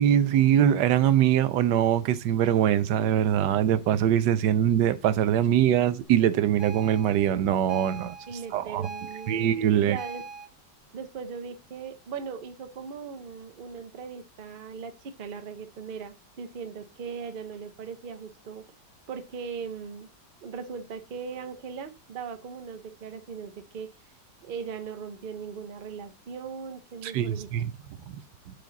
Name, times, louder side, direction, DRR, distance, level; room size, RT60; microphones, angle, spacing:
voice 1, 0.0-8.2 8.5-8.9 9.3-10.0 27.0-27.7, right 10 dB, 80° right, 1.2 m, -23 dB
sound 1, 6.6-10.5, right 4 dB, ahead, 2.8 m, -42 dB
voice 2, 8.3-9.4 9.8-10.2 10.9-18.6 19.1-20.1 20.4-23.9 24.4-27.5, right 6 dB, 50° right, 0.6 m, -39 dB
5.7 x 4.9 x 3.9 m
omnidirectional pair, 1.9 m